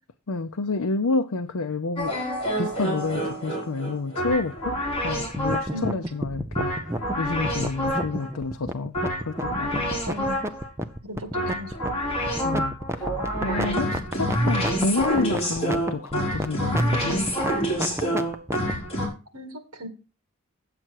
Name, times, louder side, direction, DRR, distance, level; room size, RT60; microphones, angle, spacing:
voice 1, 0.3-2.2 2.6-4.8 5.0-6.7 7.2-9.9 12.4-13.1 13.4-17.3, left 3 dB, 75° left, 0.7 m, -29 dB
sound 1, 2.0-5.9 6.5-8.3 8.9-10.7 11.3-19.1, equal, 25° left, 4.2 m, -27 dB
sound 2, 5.3-18.7, right 1 dB, 10° right, 0.6 m, -30 dB
voice 2, 10.1-10.4 11.0-11.7 19.3-19.9, left 1 dB, 65° right, 1.9 m, -36 dB
8.7 x 7.8 x 4.6 m
head